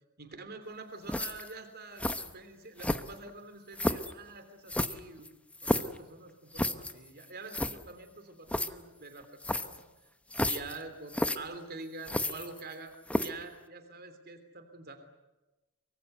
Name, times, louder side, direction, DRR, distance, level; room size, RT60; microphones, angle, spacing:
voice 1, 0.2-5.3 5.6-9.8 10.4-12.9 13.2-15.0, right 3 dB, 50° right, 8 dB, 3.2 m, -46 dB
sound 1, 1.1-1.5 2.0-2.3 2.8-3.3 3.8-4.1 4.7-6.0 6.5-6.9 7.2-7.3 7.5-7.8 8.5-8.7 9.4-9.8 10.3-10.8 11.1-11.4 12.0-12.7 13.1-13.4, left 1 dB, 5° left, 1.0 m, -31 dB
24.5 x 23.5 x 8.1 m, 1.1 s
head